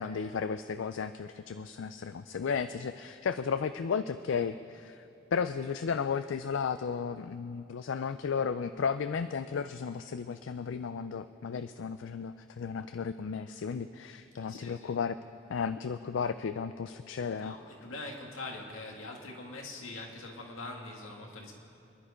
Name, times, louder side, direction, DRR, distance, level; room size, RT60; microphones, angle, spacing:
voice 1, 0.0-15.2 15.5-17.5, left 6 dB, 75° left, 12 dB, 0.4 m, -34 dB
voice 2, 14.4-15.0 17.4-21.5, left 2 dB, 90° left, 1 dB, 2.2 m, -43 dB
26.0 x 11.0 x 5.0 m, 2.7 s
head